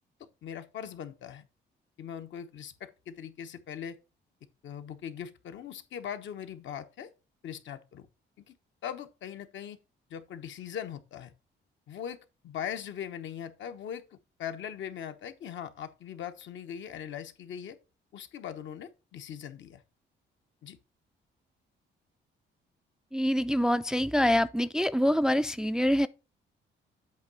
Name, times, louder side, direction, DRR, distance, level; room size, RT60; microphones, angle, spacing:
voice 1, 0.4-1.4 2.0-4.0 4.6-7.1 7.4-8.1 8.4-8.5 8.8-9.8 10.1-11.3 11.9-14.1 14.4-17.8 18.1-19.8 20.6-20.8, left 9 dB, 70° left, 1.0 m, -40 dB
voice 2, 23.1-26.1, equal, 5° right, 0.3 m, -25 dB
8.2 x 3.0 x 6.1 m
cardioid pair, 90°, 20 cm